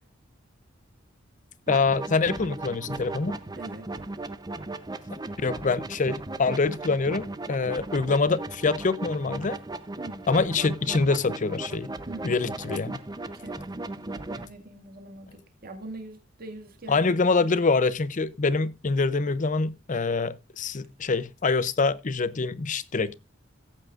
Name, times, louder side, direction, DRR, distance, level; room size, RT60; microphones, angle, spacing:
voice 1, 1.7-3.4 5.4-9.6 10.3-11.9 12.2-13.0 16.9-23.1, left 4 dB, 40° left, 0.6 m, -25 dB
sound 1, 1.7-14.5, right 2 dB, 20° right, 0.7 m, -37 dB
voice 2, 3.5-3.9 10.0-10.3 12.1-12.5 13.2-17.1 17.4-17.6, right 2 dB, 50° right, 2.0 m, -43 dB
17.0 x 8.7 x 2.5 m
head